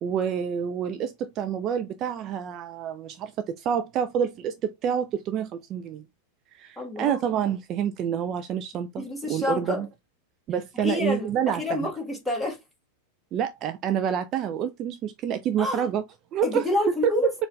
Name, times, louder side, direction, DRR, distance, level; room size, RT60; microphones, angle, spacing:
voice 1, 0.0-6.0 6.5-9.0 9.3-9.9 10.5-11.9 13.3-16.0 16.3-16.6 17.0-17.1, right 8 dB, 35° right, 0.3 m, -28 dB
voice 2, 6.8-7.2 8.7-9.9 10.7-12.6 15.6-15.9 16.4-17.3, left 2 dB, 5° left, 1.5 m, -28 dB
4.4 x 2.4 x 3.2 m
figure-of-eight pair, 90°, 0 cm